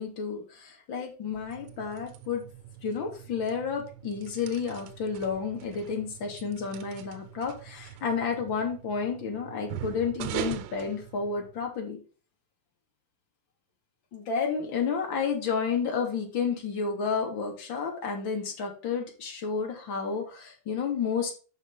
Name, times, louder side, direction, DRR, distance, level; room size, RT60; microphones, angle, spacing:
voice 1, 0.0-2.4 2.8-12.0 14.1-21.3, left 5 dB, 60° left, 1 dB, 3.0 m, -31 dB
sound 1, 1.3-11.7, right 11 dB, 90° right, 1.2 m, -42 dB
6.3 x 6.3 x 5.2 m, 0.36 s
cardioid pair, 165°, 43 cm